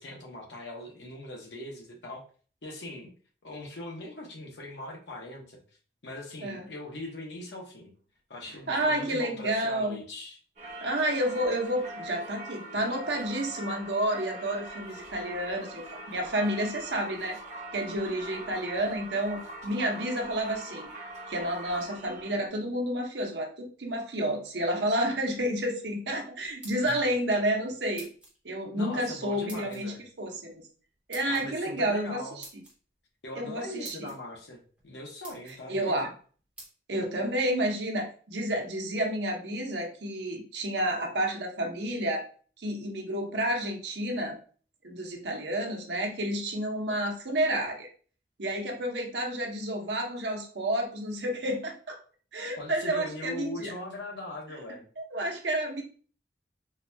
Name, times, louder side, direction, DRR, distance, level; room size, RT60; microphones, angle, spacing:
voice 1, 0.0-2.2 2.6-3.1 3.4-5.6 6.0-7.9 8.3-10.4 26.8-27.1 28.8-30.0 31.3-32.5 33.2-36.1 52.6-54.9, left 1 dB, 85° left, 0 dB, 0.9 m, -41 dB
voice 2, 8.7-10.0 10.8-17.4 17.7-20.9 21.3-28.1 28.4-30.6 31.1-32.4 33.3-34.1 35.7-36.1 36.9-42.2 42.6-44.4 44.8-47.9 48.4-52.0 52.3-53.7 55.0-55.8, right 1 dB, 85° right, 1 dB, 0.8 m, -30 dB
Singing / Church bell, 10.6-22.5, right 1 dB, 40° right, 0.9 m, -42 dB
sound 1, 26.4-27.2 28.0-28.4 29.5-29.8 31.1-31.4 32.4-32.7 33.5-33.6 33.8-34.2 34.8-34.9 35.2-35.6 36.6-36.7, right 2 dB, 5° right, 1.0 m, -47 dB
3.9 x 2.3 x 2.6 m, 0.41 s
head